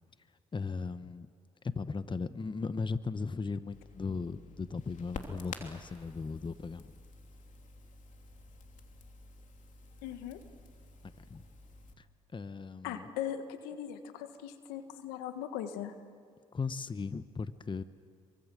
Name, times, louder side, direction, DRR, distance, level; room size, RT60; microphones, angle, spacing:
voice 1, 0.3-1.3 1.6-7.0 11.0-11.5 12.0-12.1 12.3-13.1 16.5-17.8, left 4 dB, 30° left, 13 dB, 1.1 m, -37 dB
Crackle, 3.7-11.9, left 4 dB, 55° left, 3.0 m, -50 dB
voice 2, 10.0-10.4 12.8-15.9, left 10 dB, 85° left, 9 dB, 1.5 m, -39 dB
28.0 x 24.0 x 7.7 m, 2.1 s
hypercardioid pair, 50°, 15 cm